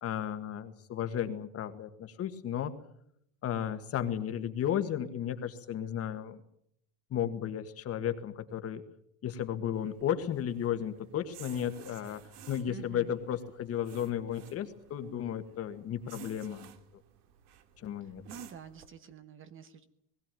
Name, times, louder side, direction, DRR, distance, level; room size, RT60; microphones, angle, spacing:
voice 1, 0.0-2.7 3.4-6.4 7.1-8.8 9.2-12.2 12.5-16.7 17.8-18.2, left 9 dB, 30° left, 9 dB, 1.7 m, -34 dB
sound 1, 9.7-18.9, right 9 dB, 75° right, 2.6 m, -55 dB
voice 2, 12.7-13.1 18.0-19.8, right 7 dB, 25° right, 11 dB, 1.1 m, -48 dB
20.5 x 16.5 x 9.1 m, 0.72 s
supercardioid pair, 155°, 47 cm